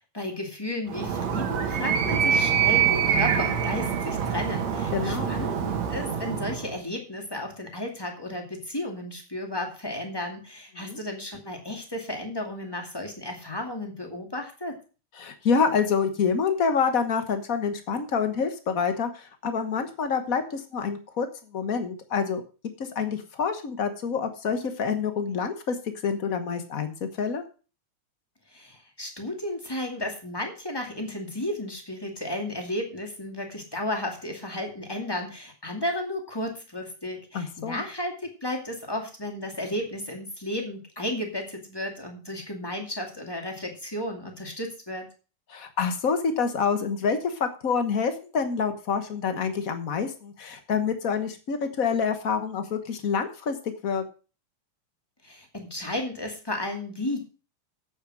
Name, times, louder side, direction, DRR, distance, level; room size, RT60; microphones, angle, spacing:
voice 1, 0.1-5.6 5.9-14.8 28.5-45.1 55.2-57.2, left 1 dB, 10° left, 2 dB, 2.0 m, -33 dB
Animal, 0.9-6.7, right 8 dB, 65° right, 2.7 m, -25 dB
voice 2, 4.9-5.3 10.8-11.0 15.2-21.3 21.5-22.4 22.8-25.8 26.0-27.4 37.3-37.8 45.5-54.0, left 6 dB, 65° left, 8 dB, 0.8 m, -27 dB
8.6 x 8.6 x 6.2 m, 0.35 s
omnidirectional pair, 3.4 m